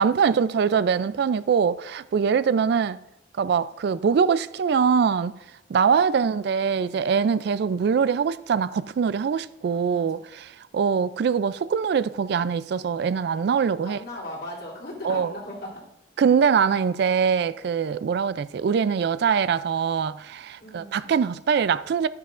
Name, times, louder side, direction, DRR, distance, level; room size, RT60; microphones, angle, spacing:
voice 1, 0.0-3.0 3.4-5.3 5.7-14.0 15.0-15.3 16.2-22.1, right 6 dB, 60° right, 0.3 m, -23 dB
voice 2, 9.7-10.1 13.9-15.9 20.6-21.2, left 1 dB, 55° left, 2.9 m, -38 dB
12.5 x 9.7 x 2.5 m
head